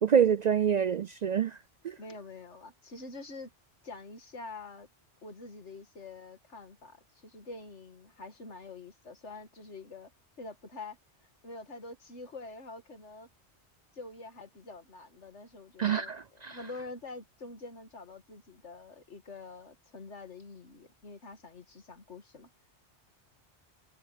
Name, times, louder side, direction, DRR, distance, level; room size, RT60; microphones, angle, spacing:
voice 1, 0.0-1.6 1.8-2.0 15.8-16.6, right 8 dB, 60° right, 0.4 m, -26 dB
voice 2, 2.0-3.5 3.8-4.9 5.2-10.1 10.4-13.3 13.9-22.5, left 3 dB, 85° left, 2.4 m, -46 dB
omnidirectional pair, 1.2 m